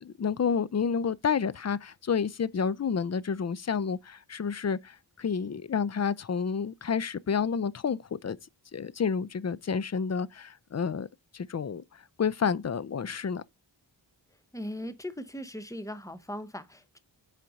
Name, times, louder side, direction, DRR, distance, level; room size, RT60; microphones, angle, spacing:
voice 1, 0.0-8.4 8.7-11.1 11.3-13.4, left 6 dB, 40° left, 0.4 m, -30 dB
voice 2, 14.5-17.0, equal, 5° left, 0.9 m, -39 dB
7.6 x 5.0 x 3.9 m
wide cardioid pair, 75°, 45 cm